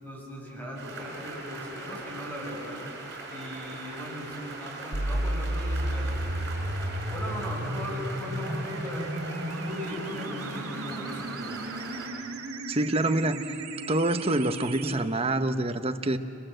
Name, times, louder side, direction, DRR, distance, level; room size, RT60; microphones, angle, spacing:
voice 1, 0.0-2.8 3.3-6.2 6.8-9.1 9.4-11.7, equal, 10° left, -2 dB, 6.5 m, -39 dB
sound 1, 0.8-12.1, right 3 dB, 55° right, 5.9 m, -40 dB
sound 2, 4.9-14.9, right 1 dB, 90° right, 2.3 m, -33 dB
voice 2, 12.7-13.4 13.9-16.2, right 2 dB, 30° right, 8 dB, 1.0 m, -26 dB
30.0 x 24.0 x 7.9 m, 2.7 s
head